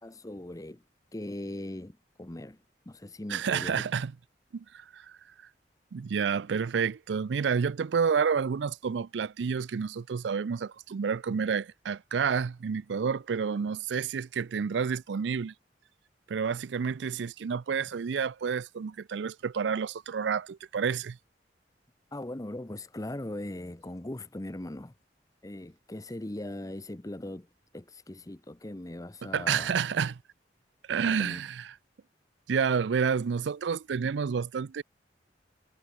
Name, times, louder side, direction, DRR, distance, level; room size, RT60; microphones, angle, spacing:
voice 1, 0.0-0.8 1.1-2.6 2.9-3.8 22.1-24.9 25.4-27.5 27.7-29.7 31.0-31.4, left 1 dB, 20° left, 0.8 m, -39 dB
voice 2, 3.3-4.1 4.5-5.2 5.9-15.5 16.3-21.2 29.2-30.2 30.9-31.7 32.5-34.8, right 6 dB, 80° right, 0.4 m, -29 dB
head